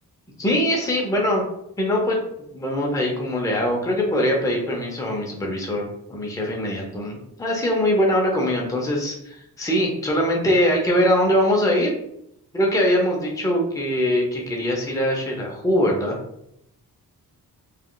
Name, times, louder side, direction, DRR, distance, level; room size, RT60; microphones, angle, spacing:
voice 1, 0.4-1.4 1.8-2.2 2.5-11.9 12.5-16.2, equal, 10° left, -1 dB, 0.7 m, -22 dB
3.4 x 2.3 x 2.3 m, 0.79 s
cardioid pair, 75°, 38 cm